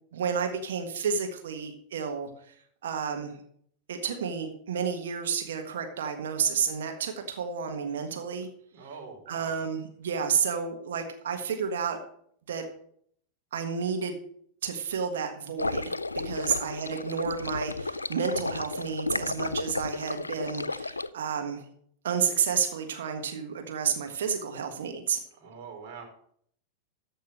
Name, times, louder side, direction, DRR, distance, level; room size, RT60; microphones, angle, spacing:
voice 1, 0.1-2.5 2.8-3.4 3.9-8.5 9.3-12.0 12.5-12.6 13.5-14.2 14.6-16.0 16.2-21.7 22.0-25.2, right 6 dB, 60° right, 5 dB, 1.5 m, -31 dB
voice 2, 8.7-9.6 10.3-10.4 16.3-16.7 25.4-26.0, right 5 dB, 45° right, 1 dB, 3.8 m, -45 dB
sound 1, 15.6-21.1, left 3 dB, 80° left, 0.4 m, -33 dB
13.5 x 5.4 x 6.4 m, 0.64 s
figure-of-eight pair, 90°, 0 cm